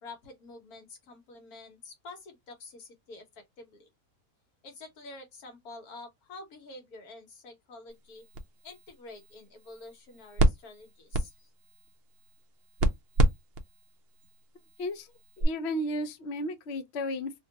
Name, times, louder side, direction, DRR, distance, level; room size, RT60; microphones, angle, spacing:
voice 1, 0.0-3.9 4.6-8.2 8.6-11.5, left 3 dB, 80° left, 1.5 m, -48 dB
sound 1, 7.9-15.4, right 1 dB, 65° right, 0.6 m, -31 dB
voice 2, 14.8-15.1 15.4-17.4, left 1 dB, 60° left, 0.8 m, -33 dB
3.1 x 2.3 x 2.7 m
omnidirectional pair, 1.6 m